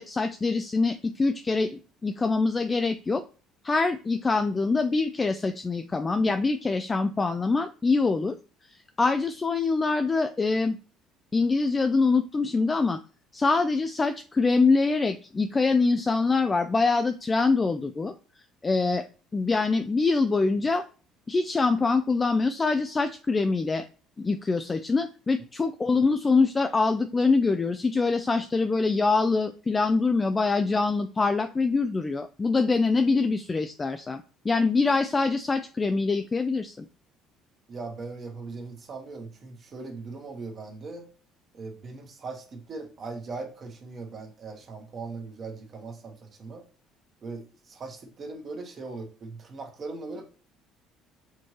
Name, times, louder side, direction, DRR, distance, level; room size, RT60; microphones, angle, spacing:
voice 1, 0.0-3.2 3.6-8.4 9.0-10.8 11.3-13.0 13.3-18.1 18.6-19.0 19.3-20.8 21.3-23.9 24.2-36.9, left 3 dB, 25° left, 8 dB, 0.3 m, -24 dB
voice 2, 37.7-41.1 41.5-46.6 47.2-50.3, right 3 dB, 45° right, 3 dB, 1.2 m, -39 dB
4.3 x 2.8 x 3.2 m, 0.37 s
supercardioid pair, 80°, 0 cm